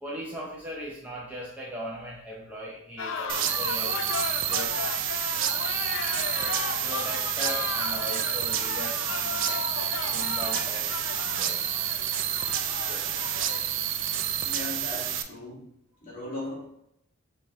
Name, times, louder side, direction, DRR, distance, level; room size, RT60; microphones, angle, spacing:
voice 1, 0.0-4.0 4.5-4.9 6.8-9.7 9.9-11.0 11.2-11.7 12.8-13.4, equal, 5° right, -5 dB, 0.6 m, -39 dB
sound 1, 3.0-13.6, left 5 dB, 60° left, 0.4 m, -35 dB
sound 2, 3.3-15.2, right 10 dB, 60° right, 0.3 m, -29 dB
voice 2, 14.4-15.6 16.0-16.7, left 1 dB, 35° left, -5 dB, 1.7 m, -37 dB
5.2 x 2.8 x 3.5 m, 0.78 s
head